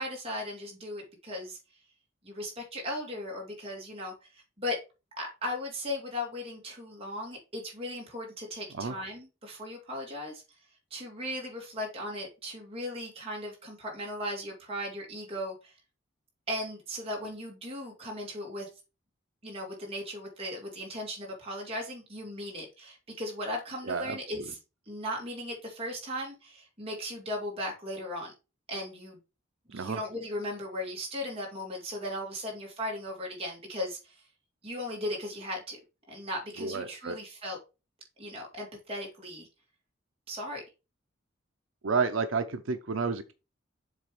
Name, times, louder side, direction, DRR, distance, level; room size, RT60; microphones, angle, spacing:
voice 1, 0.0-1.6 2.2-4.8 5.2-10.4 10.9-15.8 16.5-18.7 19.4-24.6 24.9-28.3 28.7-29.2 29.7-34.2 34.6-35.8 36.1-37.6 38.2-39.5 40.3-40.6, left 1 dB, 30° right, 2.6 m, -37 dB
voice 2, 23.9-24.2 29.7-30.0 36.6-37.2 41.8-43.3, right 4 dB, 90° right, 0.7 m, -30 dB
7.4 x 3.4 x 5.0 m
head